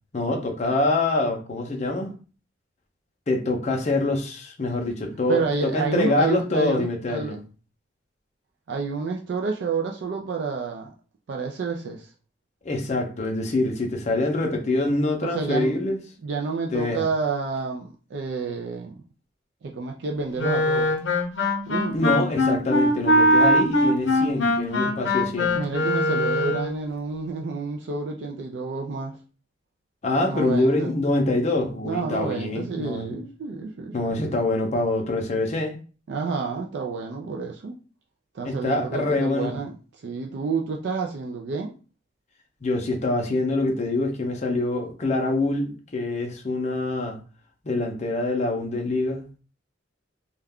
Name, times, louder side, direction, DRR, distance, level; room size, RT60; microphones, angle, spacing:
voice 1, 0.1-2.1 3.3-7.4 12.6-16.0 16.7-17.1 21.9-25.5 30.0-33.2 33.9-35.8 38.4-39.6 42.6-47.2 47.6-49.2, left 2 dB, 40° left, 0.5 m, -25 dB
voice 2, 5.3-7.4 8.7-10.9 11.3-12.1 15.3-15.8 16.2-19.0 19.6-21.0 21.7-22.0 24.8-24.9 25.5-29.2 30.3-30.9 31.8-34.4 36.1-37.8 38.3-41.7, right 4 dB, 65° right, 0.4 m, -29 dB
Wind instrument woodwind instrument, 20.4-26.8, left 1 dB, 90° left, 0.6 m, -21 dB
2.3 x 2.1 x 3.5 m
head